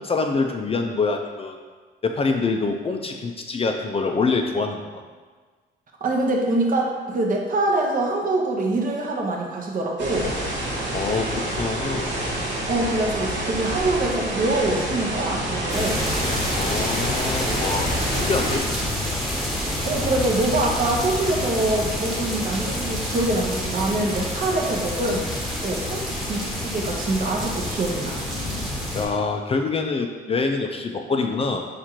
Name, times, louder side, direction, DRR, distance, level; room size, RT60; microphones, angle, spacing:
voice 1, 0.0-1.6 2.0-5.0 10.9-12.2 16.6-18.7 19.4-19.6 28.9-31.7, left 4 dB, 30° left, 3 dB, 0.4 m, -25 dB
voice 2, 6.0-10.3 12.7-16.1 19.8-25.3 25.6-28.2, right 2 dB, 45° right, 0 dB, 0.8 m, -24 dB
sound 1, 10.0-18.6, right 1 dB, 65° right, 1.2 m, -28 dB
sound 2, 15.7-29.0, left 1 dB, ahead, 1.2 m, -28 dB
4.3 x 2.5 x 4.3 m, 1.4 s
cardioid pair, 90°, 20 cm